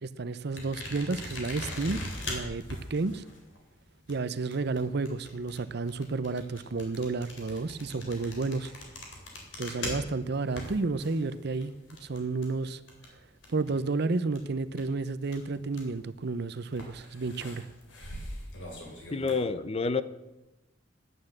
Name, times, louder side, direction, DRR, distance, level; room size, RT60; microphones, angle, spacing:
voice 1, 0.0-3.2 4.1-8.7 9.6-11.7 12.0-12.8 13.5-17.7, right 3 dB, 65° right, 14 dB, 0.6 m, -31 dB
sound 1, 0.6-13.9 14.2-16.0 16.7-19.4, left 1 dB, 85° left, 3.7 m, -42 dB
voice 2, 19.1-20.0, left 4 dB, 35° left, 14 dB, 0.6 m, -28 dB
11.0 x 9.7 x 7.8 m, 1.0 s
head